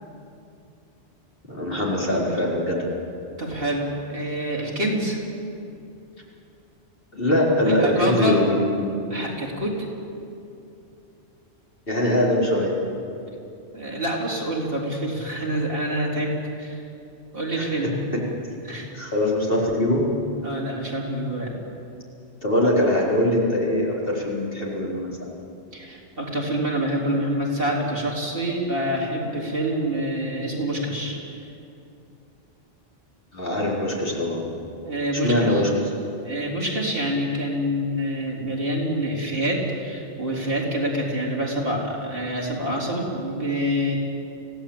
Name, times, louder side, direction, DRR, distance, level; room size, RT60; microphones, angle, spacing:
voice 1, 1.5-2.9 7.1-9.0 11.9-12.8 17.5-18.3 18.9-20.1 22.4-25.1 33.3-34.5 35.1-35.9, left 1 dB, 50° left, -4 dB, 4.6 m, -22 dB
voice 2, 3.4-5.2 7.7-8.4 9.1-9.7 13.7-16.3 16.6-16.8 17.3-18.0 18.6-18.9 20.4-21.6 25.7-31.5 34.8-35.6 36.2-43.9, equal, 50° right, -4 dB, 4.4 m, -26 dB
25.5 x 17.0 x 8.8 m, 2.6 s
omnidirectional pair, 1.2 m